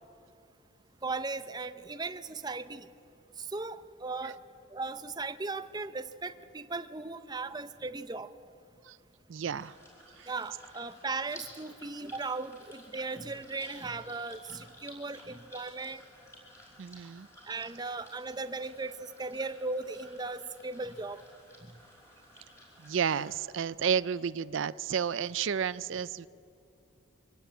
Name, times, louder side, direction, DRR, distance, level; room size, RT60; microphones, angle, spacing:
voice 1, 1.0-2.9 3.5-4.4 4.7-8.3 10.3-16.0 17.5-21.2, right 3 dB, 20° right, 12 dB, 0.7 m, -37 dB
voice 2, 9.3-9.7 10.2-10.3 16.8-17.3 22.8-26.3, right 7 dB, 70° right, 18 dB, 0.4 m, -31 dB
sound 1, 9.6-23.3, left 1 dB, 15° left, 5.2 m, -54 dB
24.0 x 17.0 x 8.9 m, 2.7 s
head